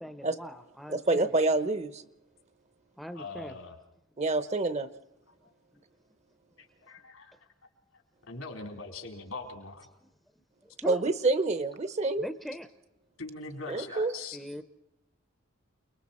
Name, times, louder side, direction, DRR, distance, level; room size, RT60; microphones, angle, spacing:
voice 1, 0.0-1.3 3.0-3.6 10.8-11.1 12.2-12.7 14.3-14.6, equal, ahead, 9 dB, 0.7 m, -40 dB
voice 2, 0.9-2.0 4.2-4.9 10.8-12.2 13.7-14.1, right 2 dB, 35° right, 12 dB, 0.8 m, -27 dB
voice 3, 3.1-3.8 6.8-7.3 8.3-9.9 13.2-14.4, left 3 dB, 85° left, 2 dB, 4.0 m, -41 dB
29.0 x 20.5 x 4.3 m, 0.89 s
head